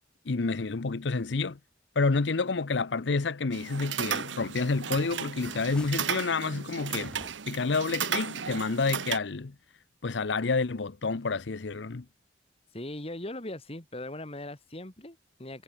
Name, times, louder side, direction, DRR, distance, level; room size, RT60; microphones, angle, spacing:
voice 1, 0.2-1.6 2.0-7.1 7.5-9.5 10.0-12.1, left 4 dB, 75° left, 0.7 m, -29 dB
sound 1, 3.5-9.2, right 8 dB, 90° right, 1.1 m, -34 dB
sound 2, 5.3-6.2 7.0-7.7, equal, 5° left, 5.0 m, -51 dB
voice 2, 12.7-15.6, left 1 dB, 30° left, 2.4 m, -39 dB
head